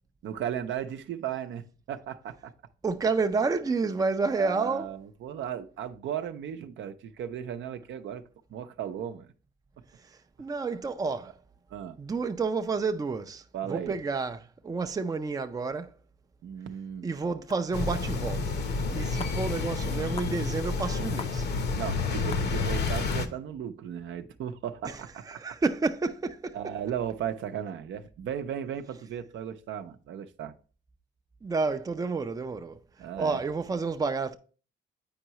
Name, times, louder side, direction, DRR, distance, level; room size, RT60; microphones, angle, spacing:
voice 1, 0.2-2.5 4.2-8.2 8.5-9.3 11.7-12.0 13.5-13.9 16.4-17.1 21.7-25.6 26.5-30.6 33.0-33.4, right 9 dB, 70° right, 0.6 m, -36 dB
voice 2, 2.8-4.9 10.4-11.3 12.0-15.9 17.0-18.5 18.9-21.5 24.8-24.9 25.3-26.6 31.4-32.8 33.2-34.4, right 4 dB, 20° right, 0.5 m, -30 dB
sound 1, 17.5-17.6 18.5-18.6 18.8-18.9 19.2-19.4 20.2-20.4 21.2-21.4 21.9-22.0 22.3-22.5, left 5 dB, 30° left, 0.5 m, -41 dB
sound 2, 17.7-23.3, left 4 dB, 55° left, 0.8 m, -30 dB
8.7 x 4.6 x 2.9 m
cardioid pair, 90°, 20 cm